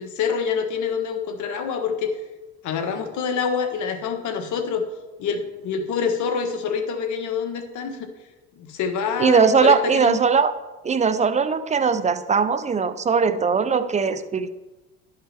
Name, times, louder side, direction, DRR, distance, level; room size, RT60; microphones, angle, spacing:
voice 1, 0.0-2.1 2.6-4.9 5.2-8.1 8.6-10.2, left 6 dB, 60° left, 6 dB, 1.2 m, -26 dB
voice 2, 9.2-10.5 10.8-14.5, right 5 dB, 20° right, 12 dB, 0.4 m, -20 dB
11.0 x 5.5 x 3.4 m, 1.1 s
supercardioid pair, 95°, 34 cm